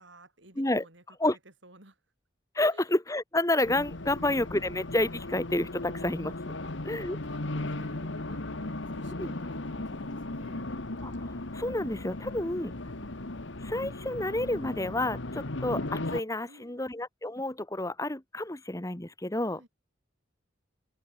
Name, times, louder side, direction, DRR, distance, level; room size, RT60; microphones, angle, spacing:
voice 1, 0.0-2.0 2.7-2.9 6.6-6.7 7.2-10.7 16.5-17.1 19.4-19.7, right 1 dB, 65° right, 5.9 m, -54 dB
voice 2, 2.5-6.4 6.9-7.2 9.2-9.4 11.0-12.7 13.6-19.6, left 1 dB, 15° left, 1.2 m, -30 dB
Race car auto racing, 3.6-16.2, left 2 dB, 70° left, 1.6 m, -37 dB
head